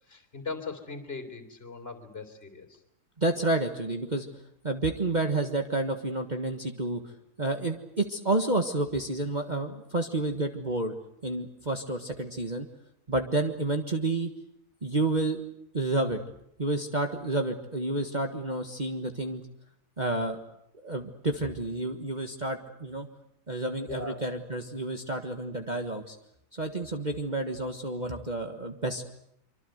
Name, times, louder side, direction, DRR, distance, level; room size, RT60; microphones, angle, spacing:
voice 1, 0.1-2.8 23.9-24.3, left 4 dB, 40° left, 9 dB, 4.0 m, -39 dB
voice 2, 3.2-4.3 4.6-7.0 7.4-10.9 11.2-12.7 13.1-14.3 14.8-15.4 15.7-16.2 16.6-19.4 20.0-20.4 20.8-23.1 23.5-26.2 26.5-29.1, right 2 dB, 30° right, 4 dB, 1.6 m, -30 dB
25.5 x 25.0 x 8.0 m, 0.76 s
omnidirectional pair, 1.7 m